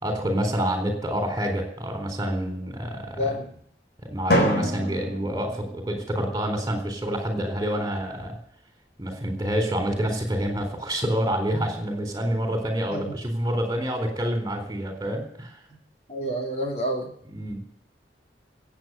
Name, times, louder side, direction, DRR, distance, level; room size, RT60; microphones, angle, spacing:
voice 1, 0.0-3.3 4.0-8.4 9.0-15.6 17.3-17.6, equal, 20° right, 5 dB, 4.0 m, -27 dB
voice 2, 3.2-3.6 12.9-13.1 16.1-17.1, equal, 35° left, 2 dB, 3.3 m, -29 dB
Drum, 4.3-6.3, equal, 60° left, 4.2 m, -26 dB
16.0 x 8.8 x 8.2 m, 0.63 s
head